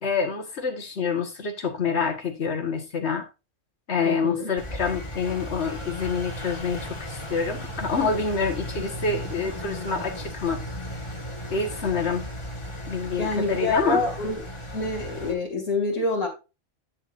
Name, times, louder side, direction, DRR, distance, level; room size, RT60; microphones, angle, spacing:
voice 1, 0.0-3.3 3.9-10.6 11.5-12.3 12.9-14.0, left 5 dB, 60° left, 4 dB, 1.8 m, -27 dB
voice 2, 4.0-4.5 13.2-14.4 14.7-16.3, left 2 dB, 85° left, -2 dB, 2.8 m, -27 dB
Engine, 4.6-15.3, equal, 25° left, 1.7 m, -36 dB
9.9 x 6.9 x 2.6 m, 0.28 s
omnidirectional pair, 1.3 m